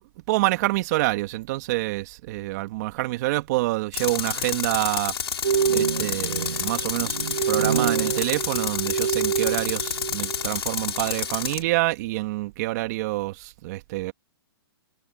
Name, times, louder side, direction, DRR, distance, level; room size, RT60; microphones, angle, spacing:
voice 1, 0.3-5.1 5.7-7.2 7.5-14.1, right 20 dB, 40° right, 2.4 m, -27 dB
Tools, 3.9-11.6, left 7 dB, 80° left, 5.0 m, -29 dB
sound 1, 5.4-10.6 10.8-11.1, right 7 dB, 90° right, 0.7 m, -27 dB
hypercardioid pair, 145°, 13 cm